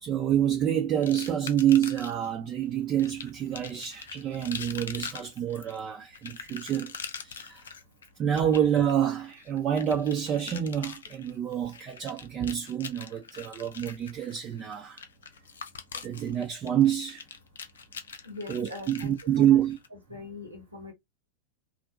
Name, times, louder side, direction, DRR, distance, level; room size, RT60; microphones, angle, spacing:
voice 1, 0.0-7.6 8.2-15.0 16.0-17.2 18.5-19.8, right 10 dB, 30° right, 0.4 m, -27 dB
sound 1, 1.0-2.3 3.0-19.9, left 6 dB, 65° left, 0.3 m, -43 dB
voice 2, 18.2-19.6 20.1-20.9, left 2 dB, 85° right, 1.1 m, -41 dB
2.5 x 2.1 x 2.6 m
figure-of-eight pair, 90°, 0 cm